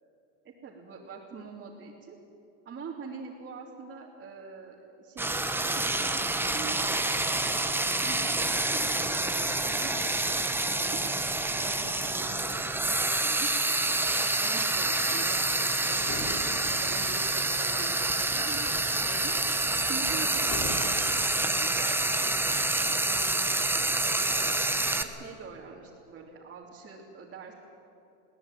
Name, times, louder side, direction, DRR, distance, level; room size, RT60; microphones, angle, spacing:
voice 1, 0.4-2.2 2.6-11.0 11.4-13.5 13.9-19.3 19.7-22.4 22.7-23.4 23.8-24.5 24.8-27.5, right 5 dB, 30° right, -3 dB, 3.3 m, -44 dB
Frying (food), 5.2-25.0, right 2 dB, 5° right, 1.3 m, -27 dB
sound 1, 15.8-15.9 16.1-17.3 18.3-19.4 20.1-20.3 20.5-20.9, left 2 dB, 45° left, 5.1 m, -40 dB
22.0 x 17.5 x 9.2 m, 2.9 s
supercardioid pair, 115°, 36 cm